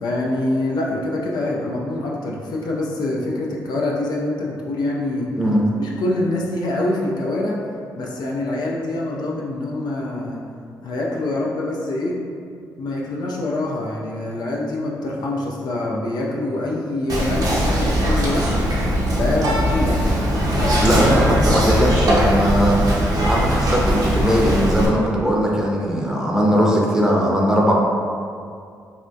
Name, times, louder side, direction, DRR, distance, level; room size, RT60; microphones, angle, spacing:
voice 1, 0.0-5.3 5.8-7.6 8.0-10.4 10.8-12.2 12.8-18.5 19.1-20.2 20.6-21.0 21.4-21.5, left 2 dB, 70° left, -3 dB, 0.4 m, -25 dB
Whispering, 17.1-24.9, equal, 60° right, 0.6 m, -20 dB
voice 2, 20.8-27.7, equal, 10° right, -3 dB, 0.7 m, -19 dB
3.4 x 2.2 x 2.6 m, 2.3 s
supercardioid pair, 60°, 7 cm